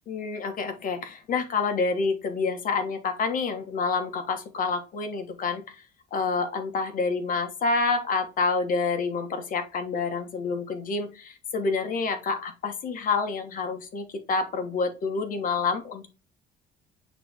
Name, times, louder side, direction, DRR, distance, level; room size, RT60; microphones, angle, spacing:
voice 1, 0.1-5.8 6.1-16.1, left 4 dB, 55° left, 7 dB, 1.3 m, -28 dB
8.7 x 3.1 x 3.5 m, 0.31 s
cardioid pair, 110°, 17 cm